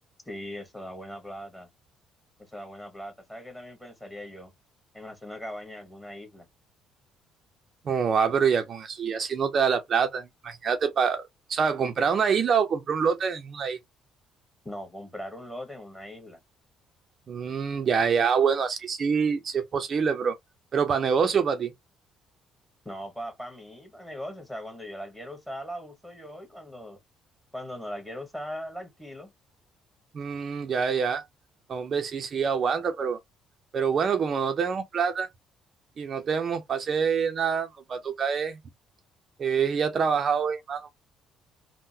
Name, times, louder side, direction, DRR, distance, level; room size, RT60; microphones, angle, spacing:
voice 1, 0.2-1.7 2.4-4.5 4.9-6.5 14.6-16.4 22.8-27.0 27.5-29.3, equal, 5° left, 1.3 m, -40 dB
voice 2, 7.9-11.2 11.5-13.8 17.3-20.4 20.7-21.7 30.1-31.2 31.7-33.2 33.7-35.3 36.0-38.6 39.4-40.9, right 6 dB, 45° right, 0.5 m, -26 dB
3.7 x 2.1 x 2.6 m
cardioid pair, 100°, 0 cm